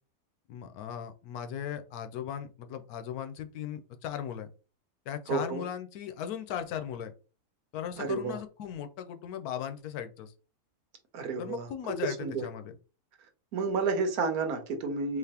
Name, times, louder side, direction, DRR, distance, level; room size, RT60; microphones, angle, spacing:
voice 1, 0.5-4.5 5.1-7.1 7.7-10.3 11.4-12.7, left 9 dB, 85° left, 9 dB, 1.1 m, -37 dB
voice 2, 5.3-5.6 8.0-8.4 11.1-11.7 12.0-12.5 13.5-15.2, right 4 dB, 90° right, 6 dB, 1.3 m, -30 dB
3.9 x 3.0 x 2.8 m, 0.34 s
omnidirectional pair, 1.5 m